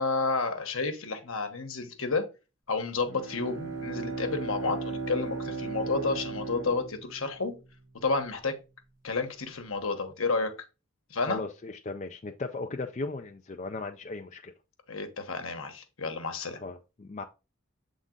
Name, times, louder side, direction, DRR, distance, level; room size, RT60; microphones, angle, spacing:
voice 1, 0.0-2.2 2.7-7.5 8.0-8.6 9.0-10.5 11.1-11.4 14.9-16.6, left 3 dB, 75° left, 1.2 m, -30 dB
Bowed string instrument, 3.1-7.7, right 3 dB, 15° right, 2.0 m, -36 dB
voice 2, 11.2-14.5 16.6-17.2, left 3 dB, 35° left, 0.4 m, -37 dB
7.4 x 3.7 x 3.8 m
head